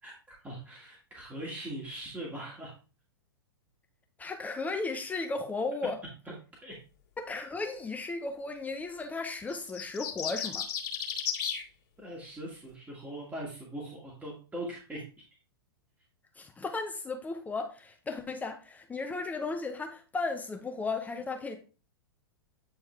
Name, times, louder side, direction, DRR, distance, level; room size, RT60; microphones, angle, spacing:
voice 1, 0.0-2.7 6.6-6.8 12.0-15.0, right 1 dB, 10° right, 2.1 m, -41 dB
voice 2, 4.2-6.0 7.2-10.7 16.4-21.6, left 3 dB, 10° left, 0.7 m, -35 dB
sound 1, 9.5-11.6, left 8 dB, 55° left, 2.0 m, -34 dB
9.0 x 4.5 x 3.3 m
figure-of-eight pair, 105°, 13 cm